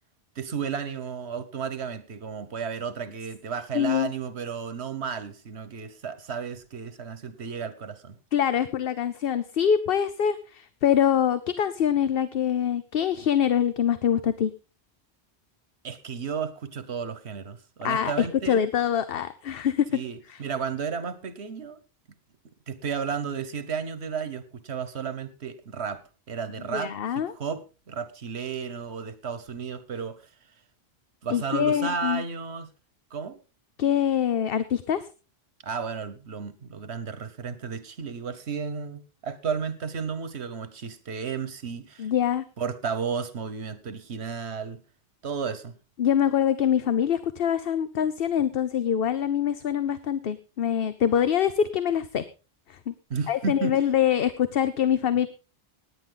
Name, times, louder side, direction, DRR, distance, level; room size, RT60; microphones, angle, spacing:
voice 1, 0.3-8.2 15.8-18.6 19.9-21.8 22.7-30.3 31.2-32.7 33.1-33.4 35.6-42.1 42.6-44.8 45.2-45.7 53.1-53.8, right 6 dB, 90° right, 13 dB, 1.4 m, -33 dB
voice 2, 3.7-4.1 8.3-14.5 17.8-19.9 20.3-20.4 26.7-27.3 31.3-32.2 33.8-35.0 42.0-42.4 46.0-52.2 52.9-53.0 53.3-55.3, left 9 dB, 65° left, 13 dB, 0.9 m, -24 dB
17.5 x 9.9 x 3.9 m, 0.33 s
omnidirectional pair, 1.1 m